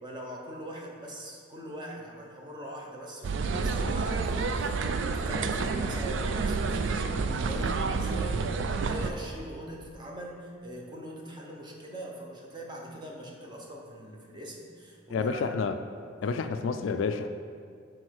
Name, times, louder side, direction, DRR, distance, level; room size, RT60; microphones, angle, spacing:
voice 1, 0.0-15.5 16.2-16.4, right 1 dB, 25° right, -1 dB, 0.8 m, -42 dB
sound 1, 3.2-9.1, right 4 dB, 65° right, 0.3 m, -29 dB
voice 2, 15.1-15.8 16.2-17.3, left 5 dB, 75° left, 9 dB, 0.3 m, -29 dB
6.3 x 3.8 x 4.6 m, 2.2 s
head